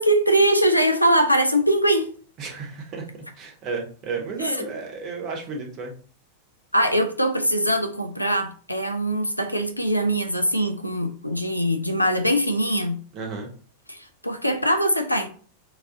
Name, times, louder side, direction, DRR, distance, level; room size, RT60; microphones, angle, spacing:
voice 1, 0.0-2.1 4.4-4.7 6.7-13.0 13.9-15.3, right 1 dB, 90° left, 0.5 m, -22 dB
voice 2, 2.4-3.1 3.4-5.9 13.1-13.5, right 4 dB, 35° right, 0.9 m, -32 dB
3.1 x 2.5 x 3.7 m
figure-of-eight pair, 90°, 0 cm